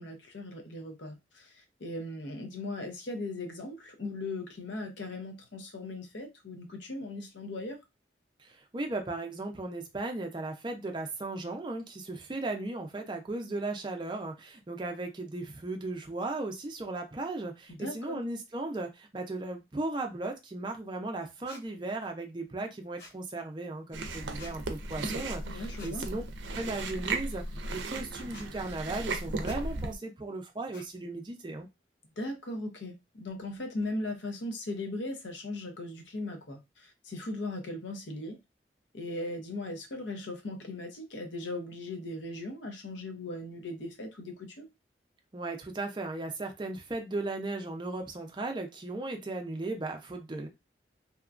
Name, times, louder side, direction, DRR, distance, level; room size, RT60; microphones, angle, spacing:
voice 1, 0.0-1.5 1.8-7.8 17.7-18.2 25.4-26.1 32.2-38.4 38.9-44.7, left 2 dB, 90° left, 0.7 m, -38 dB
voice 2, 8.4-26.2 26.5-27.4 27.7-31.7 45.3-50.5, right 2 dB, 25° right, 0.4 m, -36 dB
sound 1, 21.5-21.6 23.0-23.2 24.4-24.5 25.8-25.9 27.0-27.2 28.3-28.5 29.4-29.6 30.7-30.9, left 2 dB, 65° left, 1.0 m, -49 dB
Chewing mastication, 23.9-29.9, right 3 dB, 85° right, 0.5 m, -36 dB
2.9 x 2.3 x 2.4 m
head